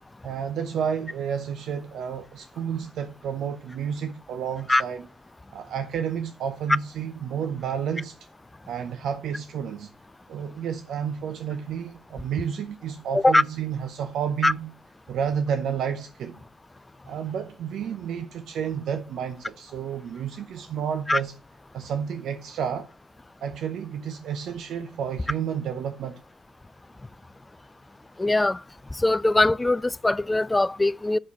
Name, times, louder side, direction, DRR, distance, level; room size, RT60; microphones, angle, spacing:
voice 1, 0.2-5.0 5.5-8.2 8.7-9.9 10.3-14.7 15.1-16.4 17.1-21.3 21.7-22.9 23.4-26.2, right 8 dB, 75° right, 0.7 m, -31 dB
voice 2, 28.2-28.6 29.0-31.2, left 2 dB, 15° left, 0.3 m, -21 dB
7.2 x 6.5 x 5.9 m
cardioid pair, 90°, 0 cm